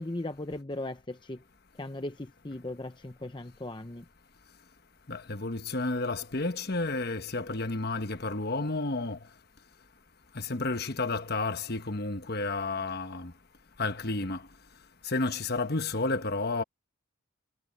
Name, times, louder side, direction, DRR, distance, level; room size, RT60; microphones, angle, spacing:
voice 1, 0.0-1.4 1.7-4.0, left 1 dB, 20° left, 0.7 m, -38 dB
voice 2, 5.1-9.2 10.3-13.3 13.8-14.5 15.0-16.6, left 3 dB, 50° left, 1.2 m, -31 dB
head